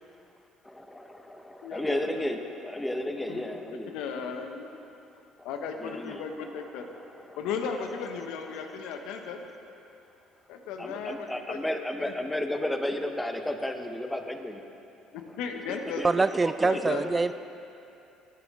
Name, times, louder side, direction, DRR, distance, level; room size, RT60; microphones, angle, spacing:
voice 1, 0.6-3.9 5.8-6.3 7.2-7.4 8.6-8.7 10.8-14.6 15.7-17.1, left 1 dB, 10° left, 6 dB, 0.9 m, -33 dB
voice 2, 1.6-2.3 3.3-3.4 3.7-4.7 5.4-6.9 7.4-9.4 10.5-11.6 12.0-12.1 15.1-16.0 16.6-17.3, left 6 dB, 70° left, 5 dB, 0.9 m, -36 dB
voice 3, 16.0-17.3, right 3 dB, 25° right, 13 dB, 0.3 m, -24 dB
15.5 x 9.0 x 3.6 m, 2.8 s
hypercardioid pair, 60°, 0 cm